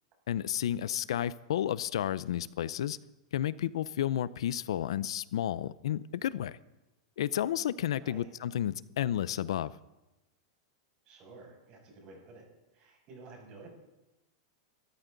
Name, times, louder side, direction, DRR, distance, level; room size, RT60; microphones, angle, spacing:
voice 1, 0.3-3.0 3.3-6.6 7.2-9.7, left 11 dB, 85° left, 18 dB, 0.5 m, -32 dB
voice 2, 8.0-8.3 11.0-12.5 12.7-13.7, right 3 dB, 35° right, 0 dB, 6.5 m, -51 dB
23.5 x 13.5 x 4.0 m, 0.99 s
supercardioid pair, 155°, 3 cm